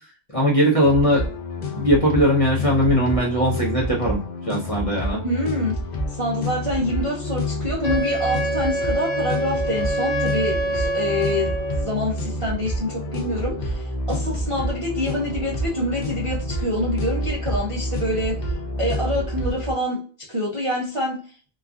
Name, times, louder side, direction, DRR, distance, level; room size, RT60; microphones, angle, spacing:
voice 1, 0.3-1.2 1.7-4.2 4.5-5.2, equal, 35° left, -6 dB, 0.6 m, -19 dB
sound 1, 0.8-19.7, left 1 dB, 90° left, 0.4 m, -28 dB
voice 2, 5.2-5.8 6.1-21.2, left 1 dB, 40° right, -4 dB, 0.5 m, -26 dB
Wind instrument woodwind instrument, 7.8-12.0, right 1 dB, 55° left, 0.9 m, -26 dB
3.1 x 2.3 x 2.3 m, 0.41 s
omnidirectional pair, 1.5 m